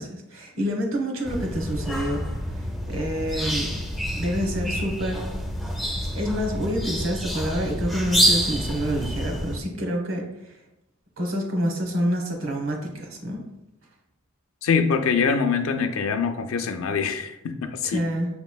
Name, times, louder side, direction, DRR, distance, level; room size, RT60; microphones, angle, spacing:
voice 1, 0.0-2.3 2.6-3.7 4.2-5.3 6.1-10.6 11.2-13.4 17.8-18.3, equal, 70° right, 2 dB, 0.9 m, -28 dB
sound 1, 1.2-9.6, equal, ahead, 0.4 m, -27 dB
voice 2, 14.6-18.0, left 5 dB, 75° left, 9 dB, 0.4 m, -24 dB
6.0 x 3.0 x 2.2 m, 0.90 s
head